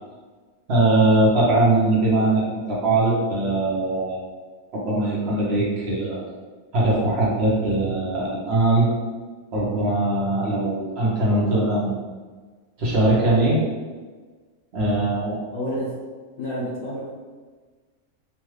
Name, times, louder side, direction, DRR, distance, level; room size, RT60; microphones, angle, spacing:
voice 1, 0.7-2.4 2.7-4.2 4.7-6.2 6.7-8.9 9.5-12.0 12.8-13.6 14.7-15.4, right 2 dB, 50° right, -6 dB, 1.0 m, -21 dB
voice 2, 15.5-15.9 16.4-17.1, equal, 75° left, -8 dB, 1.3 m, -29 dB
3.1 x 2.3 x 3.2 m, 1.4 s
omnidirectional pair, 1.6 m